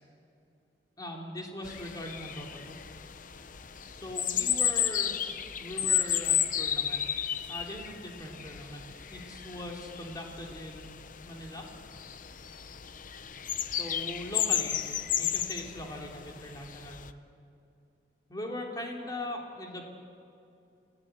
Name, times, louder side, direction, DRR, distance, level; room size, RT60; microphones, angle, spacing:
voice 1, 1.0-2.7 4.0-5.1 5.6-7.0 7.5-8.8 9.1-10.9 11.2-11.7 13.7-14.8 15.2-17.1 18.3-19.8, left 1 dB, 25° left, 0 dB, 3.3 m, -40 dB
sound 1, 1.6-17.1, left 9 dB, 50° left, 0.8 m, -33 dB
28.0 x 17.0 x 8.3 m, 2.6 s
head